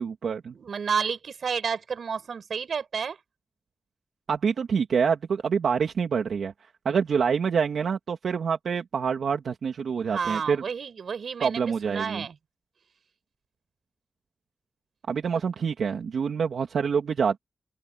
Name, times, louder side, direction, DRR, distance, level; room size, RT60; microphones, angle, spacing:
voice 1, 0.0-0.5 4.3-6.5 6.8-10.6 11.4-12.2 15.1-17.4, right 6 dB, 85° right, 3.1 m, -26 dB
voice 2, 0.5-3.2 10.1-12.3, right 6 dB, 65° right, 6.2 m, -31 dB
open air
wide cardioid pair, 170°, 0 cm